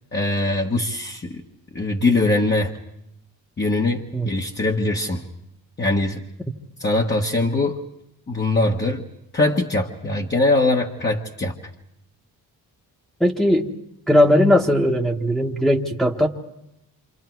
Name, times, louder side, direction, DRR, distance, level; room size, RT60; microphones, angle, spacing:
voice 1, 0.1-1.4 1.7-2.7 3.6-5.2 5.8-6.2 6.8-7.8 8.3-9.0 9.3-11.5, left 2 dB, 25° left, 0 dB, 1.4 m, -22 dB
voice 2, 13.2-13.7 14.1-16.3, left 1 dB, ahead, -1 dB, 1.4 m, -18 dB
28.0 x 27.0 x 4.7 m, 0.82 s
cardioid pair, 105°, 39 cm